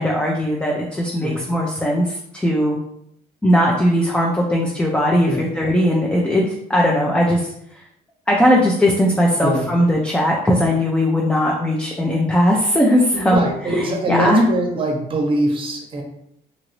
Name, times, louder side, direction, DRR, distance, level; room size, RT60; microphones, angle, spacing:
voice 1, 0.0-2.8 3.4-7.5 8.3-14.5, equal, 5° left, -2 dB, 0.4 m, -18 dB
voice 2, 13.1-16.0, right 1 dB, 30° right, 2 dB, 0.8 m, -22 dB
2.9 x 2.6 x 2.9 m, 0.74 s
cardioid pair, 110°, 17 cm